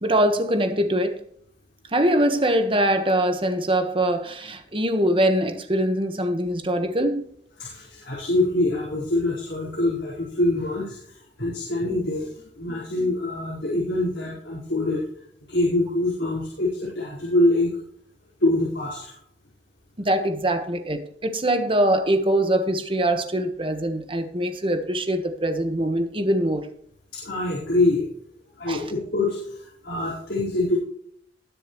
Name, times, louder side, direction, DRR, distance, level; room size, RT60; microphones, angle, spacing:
voice 1, 0.0-1.2 1.9-7.3 20.0-26.7 28.7-28.9, right 1 dB, 30° right, 7 dB, 1.3 m, -23 dB
voice 2, 7.6-15.0 15.5-17.8 18.4-19.1 27.1-28.0 28.6-30.8, left 2 dB, 70° left, -7 dB, 4.6 m, -25 dB
20.5 x 7.1 x 3.1 m, 0.68 s
head